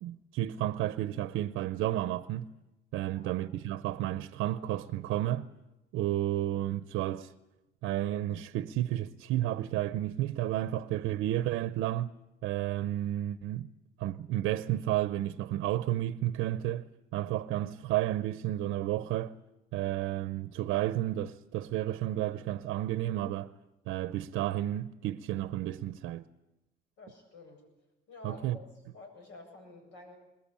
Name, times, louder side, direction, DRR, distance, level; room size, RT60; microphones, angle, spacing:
voice 1, 0.0-2.5 2.9-5.5 5.9-7.3 7.8-12.1 12.4-13.7 14.0-16.9 17.1-19.4 19.7-23.5 23.9-26.2 28.2-28.6, right 13 dB, 80° right, 0.7 m, -32 dB
voice 2, 27.0-27.6 28.1-28.6 28.9-30.2, left 3 dB, 70° left, 7.9 m, -50 dB
21.0 x 20.5 x 8.7 m
cardioid pair, 170°, 20 cm